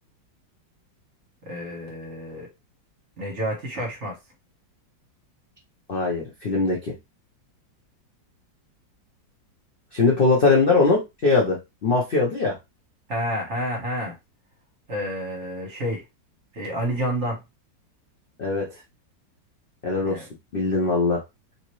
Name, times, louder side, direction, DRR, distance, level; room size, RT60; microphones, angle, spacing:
voice 1, 1.4-2.5 3.2-4.1 13.1-14.2 14.9-16.0 16.5-17.4 20.1-20.3, equal, 45° right, 1.3 m, -29 dB
voice 2, 5.9-6.9 9.9-12.6 18.4-18.7 19.8-20.2 20.5-21.2, left 3 dB, 70° left, 0.5 m, -21 dB
3.2 x 2.8 x 3.0 m
omnidirectional pair, 2.0 m